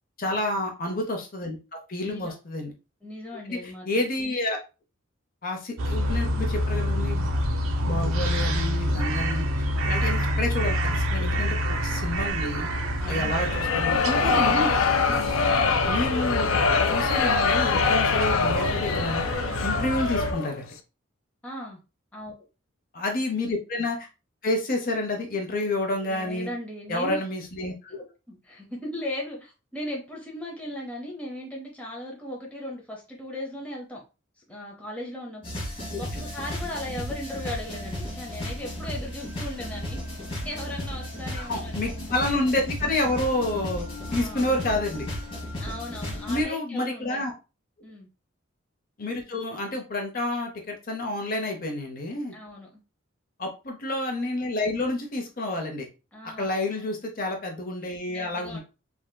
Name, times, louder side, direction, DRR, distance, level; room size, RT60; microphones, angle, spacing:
voice 1, 0.2-2.7 3.5-3.6 3.9-4.6 5.4-7.4 7.9-9.4 9.8-12.7 13.0-14.7 15.8-16.6 16.9-19.2 19.6-20.7 22.9-24.1 24.4-26.5 26.9-28.0 35.9-36.2 41.4-43.9 44.1-45.1 46.3-47.3 49.0-52.3 53.4-55.9 56.4-58.6, left 2 dB, 45° left, 2 dB, 0.7 m, -29 dB
voice 2, 2.0-2.3 3.0-4.0 7.8-8.0 9.7-10.0 13.0-13.3 15.1-15.3 19.7-19.9 21.4-21.8 22.1-22.3 26.0-27.2 28.3-34.0 34.5-40.0 40.4-41.8 44.1-44.5 45.6-47.2 47.8-48.1 52.3-52.8 56.1-56.5 58.1-58.6, left 1 dB, 5° left, -3 dB, 0.6 m, -37 dB
sound 1, 5.8-20.3, equal, 80° right, 0.5 m, -27 dB
sound 2, 13.3-20.6, left 5 dB, 75° left, 0.4 m, -24 dB
sound 3, 35.4-46.4, left 1 dB, 25° left, 1.1 m, -34 dB
3.3 x 2.8 x 2.2 m, 0.30 s
head